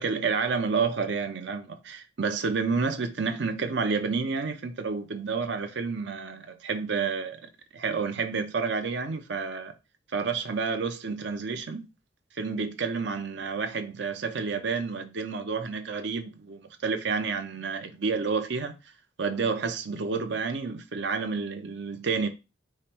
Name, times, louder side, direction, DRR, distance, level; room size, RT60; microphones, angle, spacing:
voice 1, 0.0-9.7 10.1-11.9 12.4-18.8 19.2-22.3, right 5 dB, 65° right, 0.6 m, -30 dB
4.9 x 2.0 x 4.2 m
head